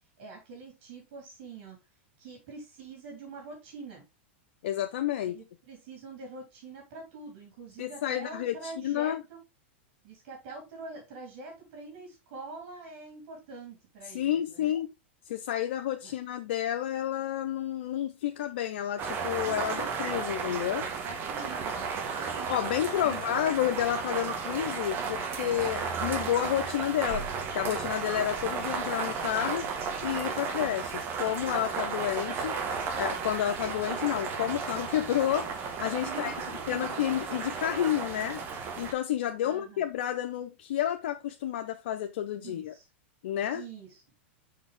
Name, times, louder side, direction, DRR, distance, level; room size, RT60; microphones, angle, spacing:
voice 1, 0.2-1.8 2.2-4.0 5.2-9.4 10.0-14.7 16.0-16.1 19.4-19.9 21.0-22.5 23.0-23.4 36.0-37.1 39.4-39.8 42.4-42.9 43.5-44.0, right 4 dB, 55° right, 3.2 m, -45 dB
voice 2, 4.6-5.4 7.8-9.2 14.1-14.9 15.3-20.9 22.5-29.7 30.0-32.6 33.0-35.5 35.8-36.3 36.7-38.4 38.8-42.7 43.2-43.6, left 11 dB, 70° left, 0.6 m, -30 dB
sound 1, 19.0-38.9, right 5 dB, 35° right, 1.6 m, -34 dB
5.7 x 4.7 x 3.5 m
hypercardioid pair, 125°, 6 cm